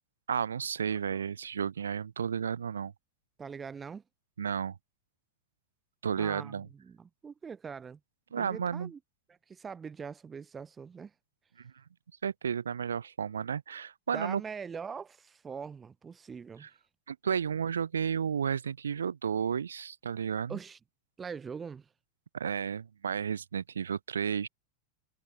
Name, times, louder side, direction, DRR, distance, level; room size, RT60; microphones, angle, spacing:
voice 1, 0.3-2.9 4.4-4.8 6.0-6.7 8.3-8.9 11.6-11.7 12.2-14.4 16.6-16.7 17.1-20.6 22.3-24.5, right 7 dB, 70° right, 0.6 m, -32 dB
voice 2, 3.4-4.0 6.2-8.0 8.4-9.0 9.3-11.1 14.1-16.7 20.5-20.8 21.2-21.9, right 6 dB, 20° right, 0.5 m, -42 dB
figure-of-eight pair, 90°, 0 cm